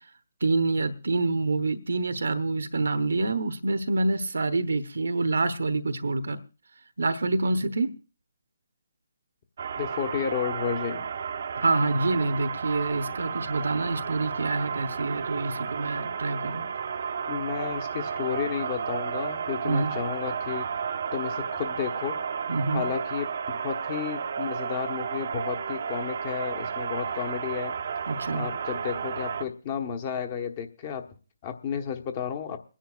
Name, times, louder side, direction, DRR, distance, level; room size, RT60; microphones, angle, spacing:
voice 1, 0.4-6.4 7.0-7.9 11.6-16.7 19.6-19.9 22.5-22.9 28.1-28.5, right 3 dB, 75° right, 0.9 m, -27 dB
sound 1, 9.6-29.4, right 6 dB, 55° right, 0.6 m, -32 dB
voice 2, 9.8-11.1 17.3-20.7 21.1-22.2 22.7-27.7 28.3-31.0 31.4-32.6, left 8 dB, 35° left, 1.1 m, -32 dB
28.5 x 10.0 x 2.4 m
figure-of-eight pair, 150°, 0 cm